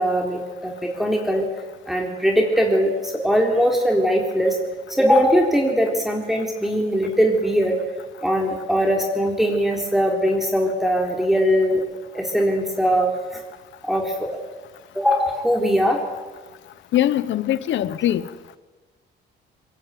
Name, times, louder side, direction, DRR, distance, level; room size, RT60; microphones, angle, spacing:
voice 1, 0.0-1.4 1.9-4.6 5.0-7.8 8.2-11.8 12.1-13.4 13.8-14.3 14.9-16.0, equal, ahead, 3.9 m, -20 dB
voice 2, 16.9-18.2, left 12 dB, 70° left, 1.0 m, -21 dB
23.5 x 21.0 x 9.2 m
cardioid pair, 90°, 20 cm